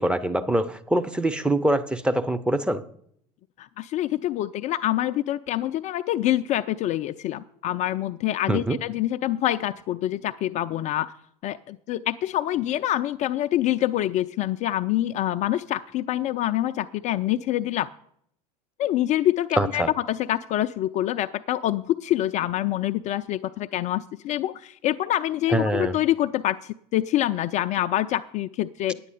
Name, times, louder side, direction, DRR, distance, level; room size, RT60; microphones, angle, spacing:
voice 1, 0.0-2.8 8.5-8.8 19.6-19.9 25.5-26.0, right 1 dB, 5° right, 10 dB, 0.6 m, -24 dB
voice 2, 3.6-11.1 11.4-17.9 18.8-29.0, left 13 dB, 35° left, 9 dB, 0.4 m, -26 dB
9.6 x 8.5 x 5.5 m, 0.67 s
figure-of-eight pair, 70°, 21 cm